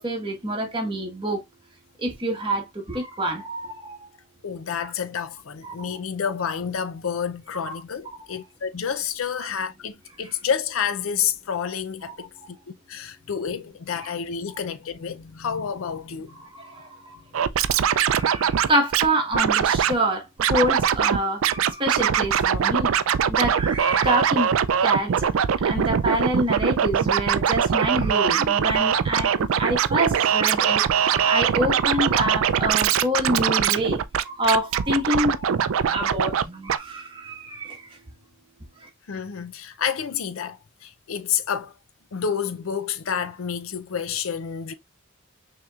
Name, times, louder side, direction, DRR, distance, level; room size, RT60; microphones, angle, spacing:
voice 1, 0.0-1.4 2.0-4.1 5.6-5.9 7.6-7.7 12.1-12.3 14.0-14.1 16.5-16.9 17.8-22.9 23.3-24.5 24.8-25.3 25.6-35.5 35.8-37.8, right 1 dB, 25° right, 1.3 m, -27 dB
voice 2, 4.4-12.3 12.9-16.4 39.1-41.7 42.1-44.7, left 7 dB, 75° left, 0.5 m, -29 dB
Scratching (performance technique), 17.3-19.1 19.3-19.9 20.4-21.2 21.4-36.4 36.7-36.8, right 8 dB, 75° right, 0.4 m, -22 dB
6.0 x 3.0 x 2.4 m
head